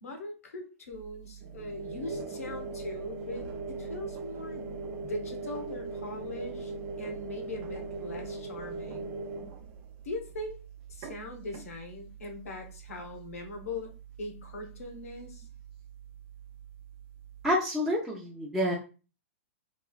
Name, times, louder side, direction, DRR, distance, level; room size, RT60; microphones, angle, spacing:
voice 1, 0.0-4.7 5.0-6.7 7.0-9.1 10.0-10.6 10.9-15.4, left 2 dB, 85° left, 4 dB, 0.8 m, -41 dB
sound 1, 0.9-17.6, right 4 dB, 45° right, 0.6 m, -41 dB
voice 2, 17.4-18.7, equal, 5° right, -6 dB, 0.5 m, -28 dB
3.0 x 2.3 x 2.3 m, 0.34 s
hypercardioid pair, 130°, 8 cm